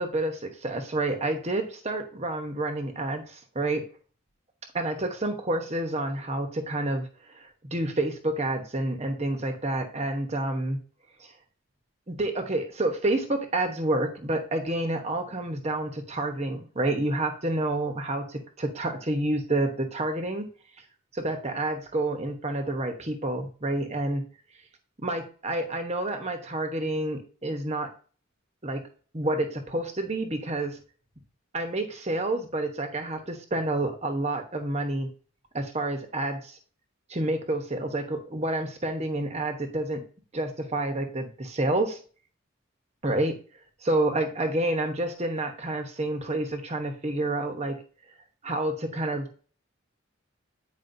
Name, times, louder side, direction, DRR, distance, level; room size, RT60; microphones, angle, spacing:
voice 1, 0.0-3.9 4.7-10.8 11.2-11.3 12.1-20.5 21.1-24.2 25.0-27.9 28.6-28.8 29.1-30.8 31.5-35.1 35.5-36.6 37.1-40.0 40.3-42.0 43.0-43.4 43.8-47.8 48.4-49.3, right 2 dB, 30° right, 5 dB, 1.0 m, -29 dB
9.4 x 4.9 x 2.7 m, 0.39 s
head